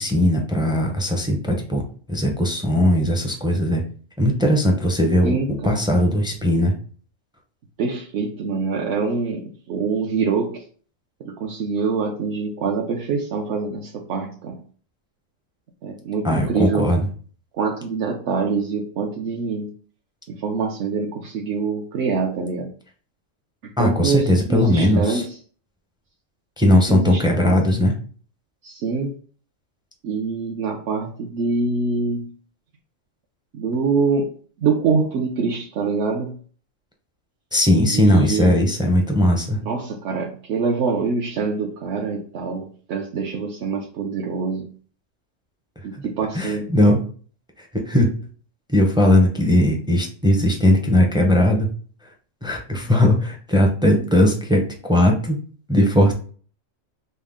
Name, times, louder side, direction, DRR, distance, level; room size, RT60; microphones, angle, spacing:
voice 1, 0.0-1.8 2.1-3.8 4.2-5.4 5.6-6.7 16.2-17.0 23.8-25.2 26.6-27.9 37.5-39.6 46.0-46.1 46.3-47.0 47.6-48.1 48.7-51.7 52.4-55.4 55.7-56.1, left 1 dB, 5° right, 2 dB, 0.3 m, -18 dB
voice 2, 5.2-5.8 7.8-10.6 11.2-14.6 15.8-16.9 17.5-19.7 20.3-22.7 23.6-25.4 26.7-27.6 28.6-29.2 30.0-32.3 33.5-34.3 34.6-36.4 37.9-38.6 39.6-44.7 45.8-46.7 52.7-52.8, right 4 dB, 65° right, 0 dB, 0.9 m, -25 dB
5.3 x 2.1 x 3.5 m, 0.43 s
omnidirectional pair, 1.3 m